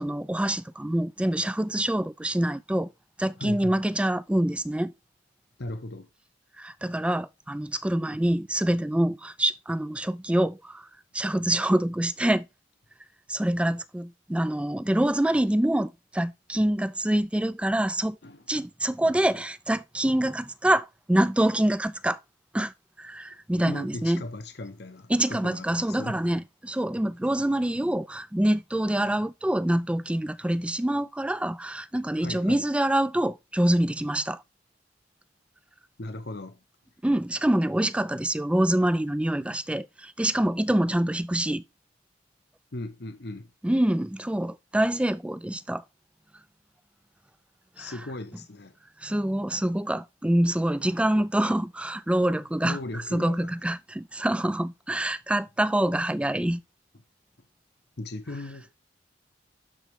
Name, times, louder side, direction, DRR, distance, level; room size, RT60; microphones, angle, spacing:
voice 1, 0.0-2.9 3.2-4.9 6.6-10.9 11.1-12.5 13.3-18.2 18.5-22.2 22.5-22.7 23.0-24.2 25.1-34.4 37.0-41.6 43.6-45.8 47.8-47.9 49.0-56.6, right 1 dB, 5° right, 0.3 m, -26 dB
voice 2, 3.4-3.8 5.6-6.1 18.2-18.4 23.6-26.2 32.2-32.6 36.0-36.6 42.7-43.5 47.8-48.7 52.6-53.5 58.0-58.8, left 2 dB, 65° left, 0.9 m, -37 dB
12.0 x 4.2 x 3.6 m
head